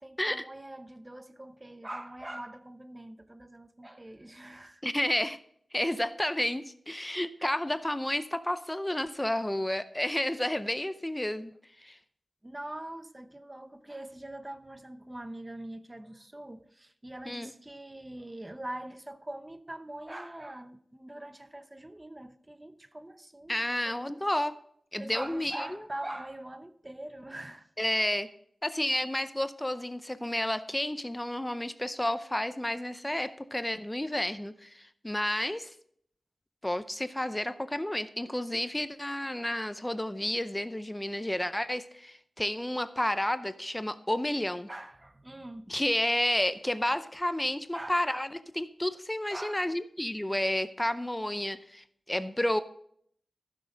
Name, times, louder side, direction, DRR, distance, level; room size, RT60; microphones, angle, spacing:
voice 1, 0.0-4.9 12.4-24.1 25.0-27.7 44.7-45.7 47.7-48.2 49.3-49.6, right 1 dB, 20° right, 0.8 m, -43 dB
voice 2, 4.8-5.4 5.7-11.5 11.8-12.0 17.3-17.5 23.5-24.6 24.9-25.8 27.8-28.3 28.6-35.7 36.6-44.7 45.7-52.6, left 1 dB, 15° left, 0.5 m, -31 dB
14.5 x 6.4 x 3.9 m
wide cardioid pair, 65°, 0 cm